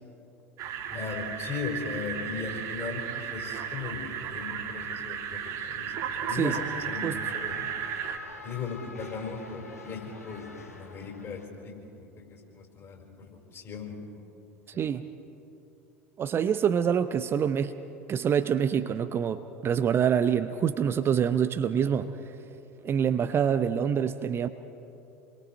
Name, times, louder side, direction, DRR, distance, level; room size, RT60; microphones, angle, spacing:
sound 1, 0.6-8.2, right 8 dB, 45° right, 1.8 m, -34 dB
voice 1, 0.9-7.7 8.4-13.0 13.5-14.0, left 5 dB, 35° left, 0 dB, 5.1 m, -38 dB
sound 2, 6.4-11.5, left 3 dB, 85° left, 1.5 m, -47 dB
voice 2, 14.7-15.0 16.2-17.7 18.1-22.1 22.8-24.5, right 8 dB, 30° right, 10 dB, 0.7 m, -26 dB
28.5 x 22.0 x 4.5 m, 2.8 s
figure-of-eight pair, 75°, 8 cm